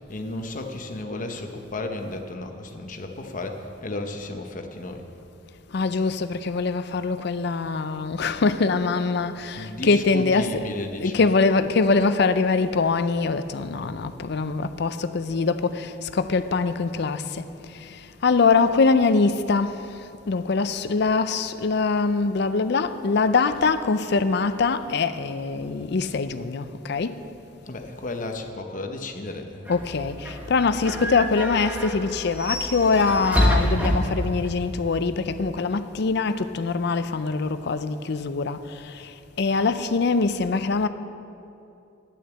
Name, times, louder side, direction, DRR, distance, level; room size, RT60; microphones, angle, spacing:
voice 1, 0.1-5.0 9.5-11.3 27.6-29.8, left 2 dB, 45° left, 0.9 m, -33 dB
voice 2, 5.7-10.7 11.0-17.2 18.2-19.7 20.3-27.1 29.7-38.6 39.4-40.9, left 4 dB, 60° left, 0.5 m, -23 dB
sound 1, 29.7-34.6, equal, 10° right, 1.2 m, -27 dB
10.5 x 6.4 x 8.0 m
head